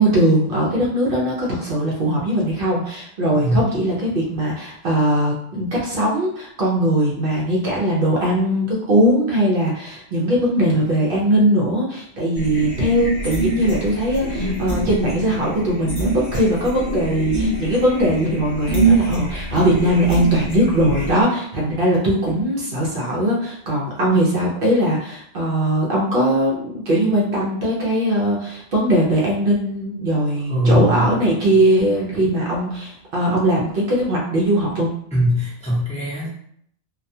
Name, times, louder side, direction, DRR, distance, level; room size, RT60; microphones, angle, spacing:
voice 1, 0.0-34.9, right 1 dB, 60° right, -4 dB, 0.7 m, -20 dB
sound 1, 12.3-21.2, right 3 dB, 40° left, 1.1 m, -25 dB
voice 2, 30.5-31.1 35.1-36.3, equal, 5° left, -8 dB, 0.6 m, -20 dB
2.2 x 2.2 x 2.6 m, 0.67 s
omnidirectional pair, 1.1 m